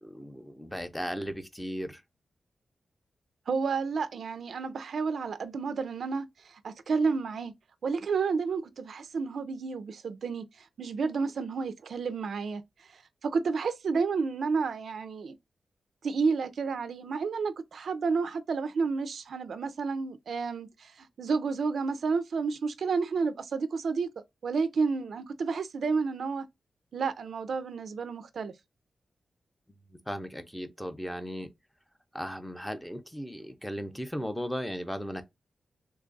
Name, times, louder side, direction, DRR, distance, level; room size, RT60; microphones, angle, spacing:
voice 1, 0.0-2.0 29.7-31.5 32.1-35.2, equal, 5° left, 0.5 m, -36 dB
voice 2, 3.5-7.5 7.8-12.6 12.9-15.4 16.0-24.1 24.4-26.5 26.9-28.5, right 5 dB, 70° right, 0.4 m, -31 dB
3.2 x 2.3 x 3.8 m
wide cardioid pair, 160°, 0 cm